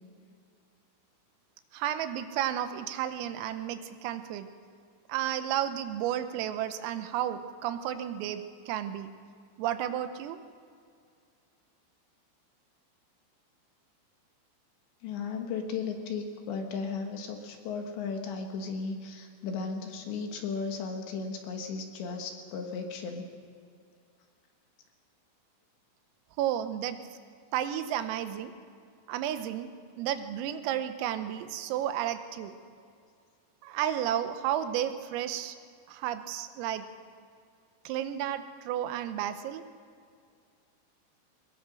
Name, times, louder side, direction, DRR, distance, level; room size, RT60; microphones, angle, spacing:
voice 1, 1.7-4.5 5.1-9.1 9.6-10.4 26.4-27.0 27.5-28.5 29.1-29.7 30.0-32.6 33.6-35.6 35.9-36.9 37.9-39.6, right 11 dB, 85° right, 10 dB, 3.7 m, -32 dB
voice 2, 15.0-23.3, left 5 dB, 70° left, 4 dB, 3.5 m, -35 dB
22.0 x 21.0 x 6.3 m, 2.3 s
omnidirectional pair, 5.9 m